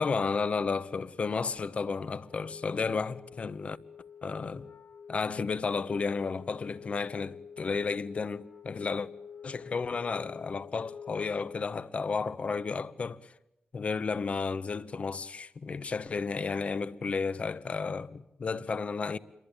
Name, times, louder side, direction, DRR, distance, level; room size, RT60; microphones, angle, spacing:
voice 1, 0.0-3.8 4.2-4.7 5.1-9.1 9.4-13.3 13.7-19.2, left 4 dB, 45° left, 1.0 m, -32 dB
Wind instrument woodwind instrument, 2.2-11.9, left 7 dB, 70° left, 1.2 m, -48 dB
28.5 x 23.0 x 9.0 m
wide cardioid pair, 170°, 3 cm